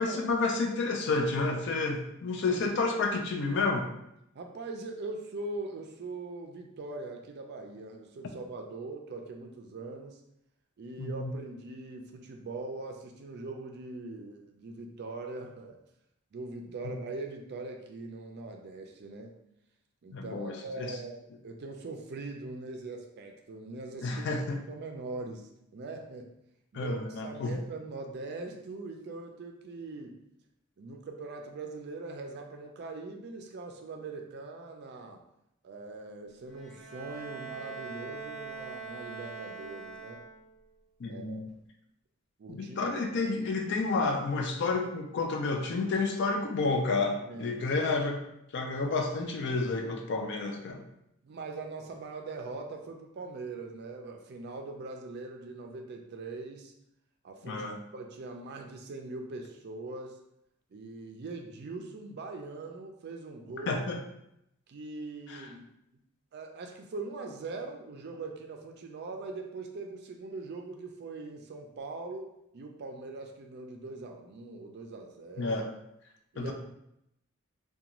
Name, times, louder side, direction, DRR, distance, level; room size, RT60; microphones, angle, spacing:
voice 1, 0.0-3.9 11.0-11.3 20.1-20.9 24.0-24.6 26.7-27.6 41.0-41.4 42.5-48.2 48.5-50.8 57.4-57.8 63.7-64.0 65.3-65.5 75.4-75.7 76.4-76.5, left 3 dB, 55° left, 3 dB, 0.4 m, -30 dB
voice 2, 4.3-10.2 10.8-15.8 16.3-19.3 20.0-24.1 24.6-26.3 26.7-30.2 30.8-35.2 35.6-40.2 41.1-41.5 42.4-43.2 47.2-47.6 51.2-56.7 57.2-60.2 60.7-63.8 64.7-65.7 66.3-75.6 76.3-76.5, right 3 dB, 50° right, 3 dB, 0.4 m, -41 dB
Bowed string instrument, 36.5-40.6, right 5 dB, ahead, 0.5 m, -43 dB
2.5 x 2.2 x 2.9 m, 0.80 s
head